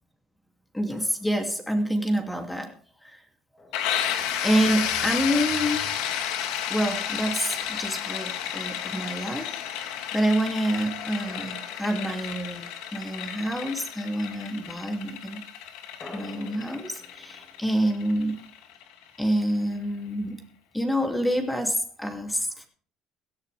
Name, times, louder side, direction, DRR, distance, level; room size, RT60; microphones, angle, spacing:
voice 1, 0.7-2.7 3.0-3.2 4.0-6.0 6.7-12.7 12.9-15.4 16.1-18.4 19.2-20.4 20.7-22.7, equal, 5° left, 4 dB, 2.6 m, -27 dB
Drum, 0.9-1.6 3.6-4.7 7.4-8.6 11.3-12.9 16.0-19.0, left 2 dB, 25° left, 4.6 m, -50 dB
sound 1, 3.7-19.3, left 9 dB, 85° left, 2.4 m, -32 dB
17.0 x 14.5 x 3.4 m, 0.44 s
cardioid pair, 135°, 0 cm